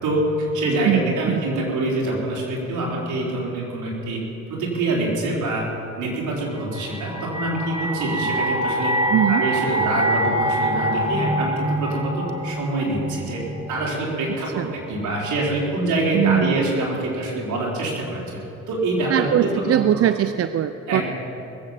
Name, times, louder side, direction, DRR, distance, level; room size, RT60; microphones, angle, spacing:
voice 1, 0.0-4.2 4.5-5.7 6.0-8.9 9.3-13.4 13.7-18.4 18.7-20.0 20.9-21.0, right 2 dB, 75° right, -3 dB, 4.4 m, -25 dB
voice 2, 0.9-1.4 9.1-9.4 14.6-14.7 16.1-16.7 19.1-21.0, right 11 dB, 50° right, 11 dB, 0.5 m, -21 dB
sound 1, 6.7-13.9, right 1 dB, 15° right, 1.4 m, -25 dB
20.5 x 7.9 x 7.5 m, 3.0 s
cardioid pair, 90°, 30 cm